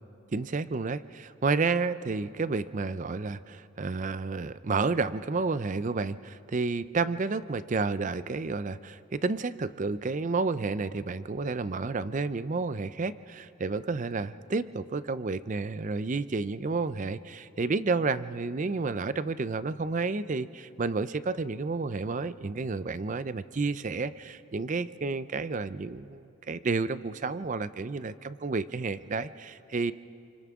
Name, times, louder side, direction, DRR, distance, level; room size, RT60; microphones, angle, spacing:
voice 1, 0.3-29.9, right 4 dB, 35° right, 14 dB, 0.4 m, -31 dB
28.5 x 25.5 x 3.7 m, 2.6 s
head